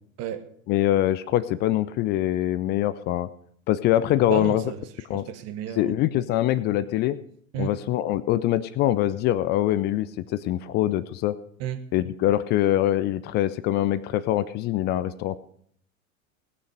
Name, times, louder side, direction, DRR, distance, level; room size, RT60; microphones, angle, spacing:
voice 1, 0.7-3.3 3.7-4.6 5.1-5.3 5.8-7.2 7.6-11.4 11.9-15.4, left 13 dB, 25° left, 0.4 m, -24 dB
voice 2, 4.3-4.8 5.1-5.9 7.5-7.8 11.6-11.8, right 9 dB, 35° right, 1.4 m, -32 dB
19.0 x 6.5 x 6.4 m
figure-of-eight pair, 85°, 42 cm